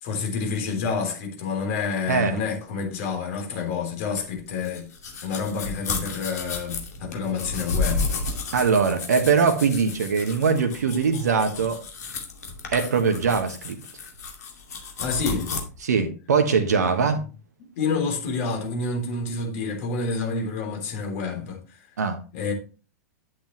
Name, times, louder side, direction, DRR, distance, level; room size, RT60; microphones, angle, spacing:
voice 1, 0.0-4.9 5.2-8.2 15.0-15.5 16.7-17.2 17.8-21.9 22.3-22.5, left 4 dB, 55° left, 3.4 m, -28 dB
voice 2, 2.1-2.4 8.5-11.8 12.7-13.8 15.8-17.2 22.0-22.2, right 5 dB, 75° right, 1.2 m, -22 dB
sound 1, 4.1-15.6, left 4 dB, 70° left, 2.4 m, -32 dB
10.0 x 7.8 x 3.1 m
figure-of-eight pair, 95°, 9 cm